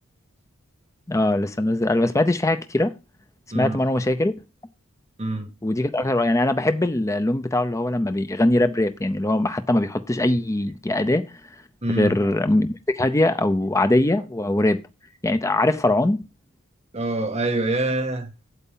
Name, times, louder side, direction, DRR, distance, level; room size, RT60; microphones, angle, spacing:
voice 1, 1.1-2.9 3.5-4.3 5.6-11.2 11.9-14.8 15.2-16.2, left 1 dB, 15° left, 0.6 m, -21 dB
voice 2, 3.5-3.8 5.2-5.5 11.8-12.1 16.9-18.3, right 2 dB, 30° right, 1.8 m, -25 dB
8.2 x 8.1 x 3.8 m
head